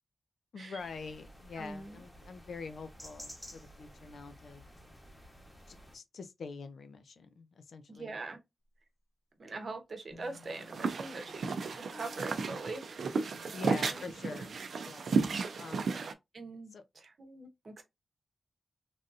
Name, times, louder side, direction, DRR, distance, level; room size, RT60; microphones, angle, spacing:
voice 1, 0.5-4.6 5.7-8.2 13.5-15.2 15.6-16.1 16.7-16.8, left 4 dB, 70° left, 0.5 m, -45 dB
sound 1, 0.8-6.0, equal, 10° left, 1.0 m, -53 dB
voice 2, 1.6-2.0 7.9-8.4 9.4-11.6 11.9-13.1 13.9-14.0 16.3-17.8, right 3 dB, 45° right, 0.8 m, -43 dB
sound 2, 10.1-14.4, left 4 dB, 40° left, 1.0 m, -57 dB
sound 3, 10.3-16.1, right 4 dB, 65° right, 0.4 m, -34 dB
3.3 x 2.6 x 2.5 m
wide cardioid pair, 165°, 0 cm